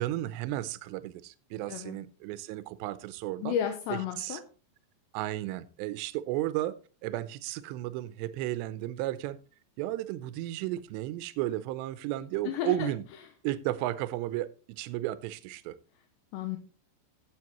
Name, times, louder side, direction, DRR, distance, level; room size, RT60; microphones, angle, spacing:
voice 1, 0.0-3.6 3.9-4.4 5.1-9.4 9.8-13.0 13.4-15.8, right 15 dB, 80° right, 2.6 m, -34 dB
voice 2, 3.4-4.4 12.5-12.9 16.3-16.6, left 10 dB, 75° left, 3.0 m, -32 dB
14.0 x 7.9 x 3.0 m
omnidirectional pair, 5.4 m